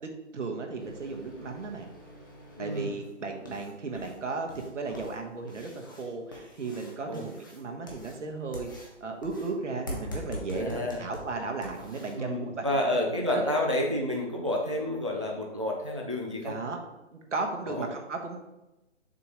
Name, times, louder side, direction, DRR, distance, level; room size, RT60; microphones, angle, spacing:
voice 1, 0.0-1.9 2.6-13.8 16.4-16.8 17.1-18.4, right 3 dB, 80° right, 3 dB, 1.3 m, -35 dB
sound 1, 0.8-12.2, left 1 dB, 15° left, 0.6 m, -45 dB
voice 2, 2.6-2.9 7.1-7.2 10.5-11.0 12.2-16.6 17.7-17.9, left 1 dB, 25° right, 0 dB, 0.4 m, -30 dB
6.8 x 3.0 x 5.0 m, 0.97 s
hypercardioid pair, 165°, 36 cm